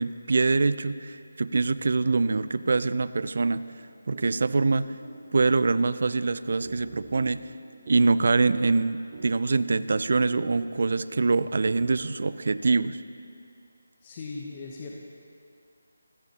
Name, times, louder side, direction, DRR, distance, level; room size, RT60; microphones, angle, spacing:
voice 1, 0.0-3.7 4.1-4.9 5.3-7.4 7.9-13.0, right 3 dB, 60° right, 15 dB, 0.4 m, -24 dB
sound 1, 3.9-12.3, right 4 dB, 35° right, 0.8 m, -47 dB
voice 2, 14.0-14.9, left 4 dB, 30° left, -1 dB, 0.9 m, -38 dB
19.0 x 14.5 x 2.9 m, 2.4 s
figure-of-eight pair, 165°, 0 cm